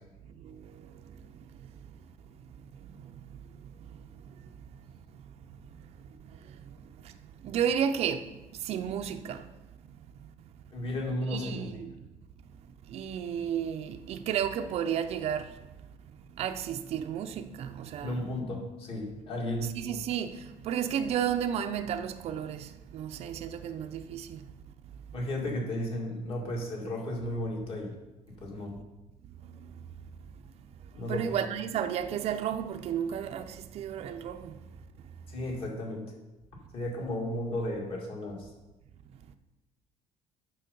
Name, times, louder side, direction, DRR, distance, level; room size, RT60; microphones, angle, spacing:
voice 1, 7.4-8.3 8.6-9.4 11.3-12.0 12.9-15.5 16.4-18.2 19.6-24.4 31.1-34.5, right 9 dB, 50° right, 0.5 m, -32 dB
voice 2, 10.7-11.8 18.0-19.7 25.1-28.0 28.4-28.8 31.0-31.4 35.3-36.1 36.7-38.5, left 1 dB, 40° left, 2.2 m, -34 dB
9.0 x 6.6 x 5.3 m
cardioid pair, 165°, 14 cm